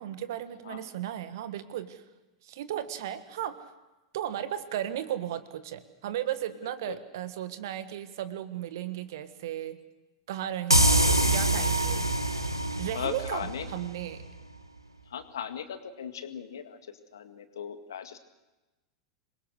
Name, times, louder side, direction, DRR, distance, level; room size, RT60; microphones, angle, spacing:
voice 1, 0.0-2.0 2.4-3.7 4.1-9.8 10.3-12.1 12.8-14.2, right 11 dB, 55° right, 12 dB, 1.6 m, -35 dB
voice 2, 6.6-7.0 12.9-13.7 15.1-18.2, left 8 dB, 65° left, 9 dB, 1.9 m, -38 dB
sound 1, 10.7-14.2, right 1 dB, 90° right, 1.2 m, -25 dB
26.5 x 22.0 x 6.4 m, 1.1 s
figure-of-eight pair, 90°, 2 cm